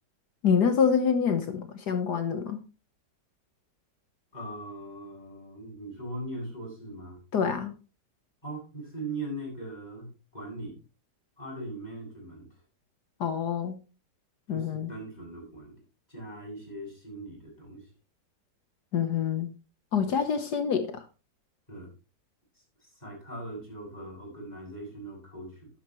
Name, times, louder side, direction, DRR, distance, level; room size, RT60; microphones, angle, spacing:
voice 1, 0.4-2.6 7.3-7.7 13.2-13.8 14.5-14.9 18.9-19.5 19.9-21.0, left 7 dB, 65° left, 1.6 m, -26 dB
voice 2, 4.3-7.2 8.4-10.8 11.4-12.5 14.5-15.7 16.1-17.9 20.0-20.2 21.7-21.9 22.8-25.7, right 1 dB, 20° left, 7.7 m, -40 dB
12.5 x 10.0 x 3.1 m
omnidirectional pair, 1.9 m